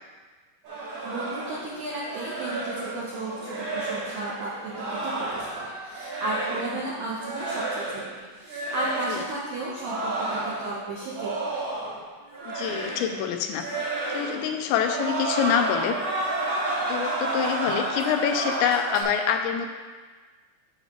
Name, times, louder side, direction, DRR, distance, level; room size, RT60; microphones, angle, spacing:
sound 1, 0.6-6.8 7.2-8.2 8.4-9.2 9.7-12.0 12.3-13.2 13.5-14.5 14.8-19.0, right 2 dB, 50° right, 2.8 m, -31 dB
voice 1, 1.0-8.0 8.4-11.6, right 2 dB, 80° right, -6 dB, 2.0 m, -34 dB
voice 2, 12.5-13.7 14.1-16.0 16.9-19.7, left 8 dB, 85° left, 5 dB, 2.8 m, -26 dB
11.0 x 7.1 x 3.0 m, 1.4 s
omnidirectional pair, 5.2 m